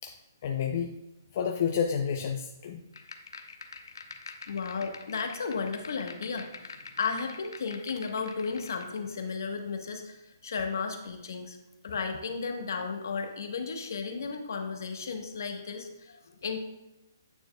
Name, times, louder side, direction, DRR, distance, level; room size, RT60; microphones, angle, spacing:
voice 1, 0.4-0.9 1.3-2.8, left 7 dB, 35° left, 2 dB, 0.4 m, -29 dB
sound 1, 2.9-9.0, left 4 dB, 90° left, 0.8 m, -46 dB
voice 2, 4.5-11.6 11.8-16.6, left 5 dB, 60° left, 4 dB, 1.2 m, -34 dB
9.0 x 6.7 x 2.3 m, 0.94 s
hypercardioid pair, 170°, 2 cm